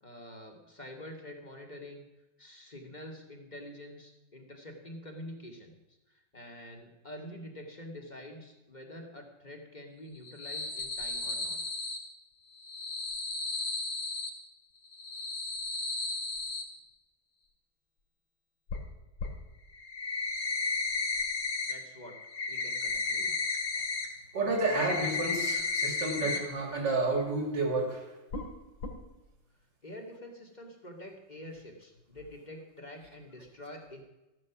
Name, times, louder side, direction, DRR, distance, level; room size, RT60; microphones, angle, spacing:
voice 1, 0.0-2.1 2.4-5.8 6.1-11.6 21.7-22.2 22.5-23.4 29.8-34.0, left 1 dB, 20° left, 2 dB, 2.1 m, -47 dB
sound 1, 10.1-12.0 12.5-14.3 14.9-16.6 18.7-18.8 19.2-19.3 19.7-21.7 22.0-24.1 24.4-26.4 26.7-26.8 27.2-27.3 28.3-28.5 28.8-28.9, left 3 dB, 75° left, 2.7 m, -34 dB
voice 2, 24.3-28.2, right 2 dB, 65° right, 3 dB, 3.2 m, -30 dB
14.5 x 11.5 x 6.0 m, 1.0 s
omnidirectional pair, 2.1 m